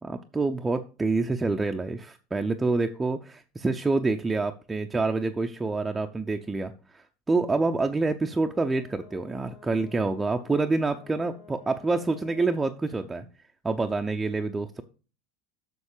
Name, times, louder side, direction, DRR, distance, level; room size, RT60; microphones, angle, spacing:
voice 1, 0.0-13.3 13.6-14.8, right 3 dB, 15° right, 5 dB, 0.7 m, -27 dB
Brass instrument, 8.4-12.8, left 7 dB, 65° left, 1.8 m, -52 dB
7.1 x 6.3 x 6.7 m, 0.36 s
hypercardioid pair, 80°, 0 cm